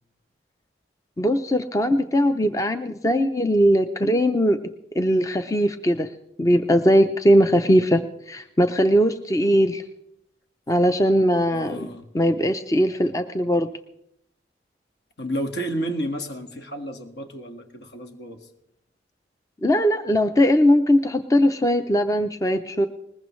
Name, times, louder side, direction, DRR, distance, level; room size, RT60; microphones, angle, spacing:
voice 1, 1.2-4.6 4.9-6.1 6.4-8.0 8.3-9.8 10.7-11.9 12.1-13.7 19.6-22.9, equal, 15° left, 8 dB, 0.5 m, -20 dB
voice 2, 11.5-12.1 15.2-18.5, equal, 70° left, 6 dB, 1.7 m, -31 dB
21.5 x 20.0 x 3.1 m, 0.76 s
head